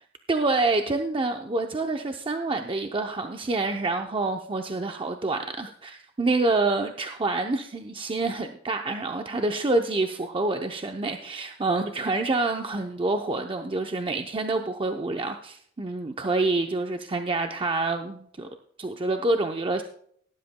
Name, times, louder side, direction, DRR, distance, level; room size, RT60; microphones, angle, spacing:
voice 1, 0.3-18.5 18.8-19.8, right 2 dB, 25° right, 4 dB, 0.6 m, -27 dB
18.0 x 11.0 x 2.2 m, 0.64 s
head